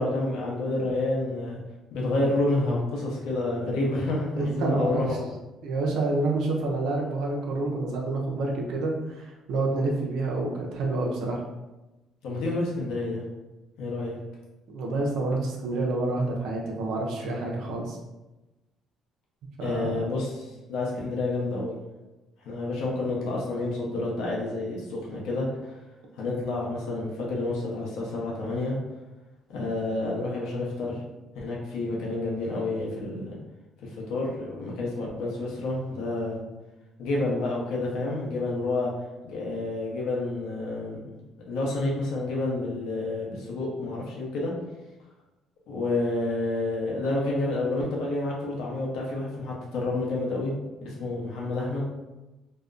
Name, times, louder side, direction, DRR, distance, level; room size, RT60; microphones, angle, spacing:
voice 1, 0.0-1.6 1.9-5.2 12.2-13.2 13.8-14.2 19.6-21.8 22.4-25.7 26.2-28.8 29.5-31.0 31.3-33.4 33.8-36.4 37.0-38.9 39.2-41.2 41.5-44.5 45.7-50.5 50.8-51.9, left 2 dB, 85° left, -3 dB, 0.7 m, -29 dB
voice 2, 4.4-5.0 5.6-11.4 14.7-18.0 19.6-19.9, right 2 dB, 75° right, -1 dB, 0.5 m, -28 dB
2.7 x 2.1 x 2.4 m, 1.1 s
cardioid pair, 150°, 0 cm